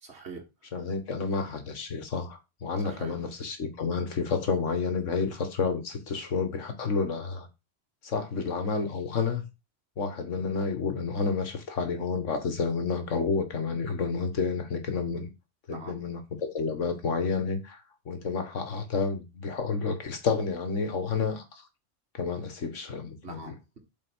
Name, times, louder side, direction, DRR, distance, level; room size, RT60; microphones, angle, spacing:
voice 1, 0.0-0.4 2.8-3.1 15.7-16.0 23.2-23.8, right 4 dB, 60° right, 2.1 m, -43 dB
voice 2, 0.7-7.5 8.0-9.4 10.0-15.3 15.7-21.6 22.1-23.5, left 4 dB, 85° left, 1.8 m, -30 dB
8.1 x 4.5 x 6.2 m
omnidirectional pair, 1.2 m